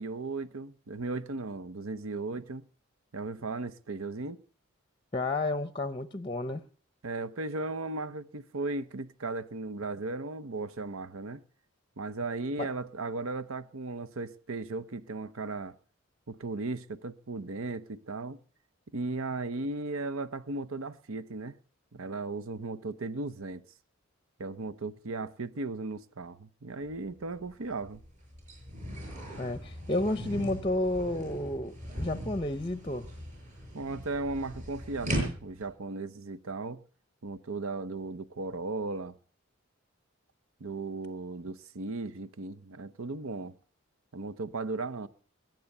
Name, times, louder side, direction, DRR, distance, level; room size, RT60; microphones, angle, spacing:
voice 1, 0.0-2.6 3.1-4.4 7.0-11.4 12.0-15.7 16.3-18.4 18.9-21.6 21.9-23.6 24.4-28.0 33.7-36.8 37.2-39.1 40.6-43.5 44.1-45.1, right 3 dB, 75° right, 0.8 m, -36 dB
voice 2, 5.1-6.6 12.6-12.7 29.4-33.1, left 2 dB, 25° left, 0.7 m, -31 dB
sound 1, 26.8-27.0 27.4-35.7, equal, 35° right, 7.1 m, -39 dB
21.0 x 9.3 x 6.7 m
head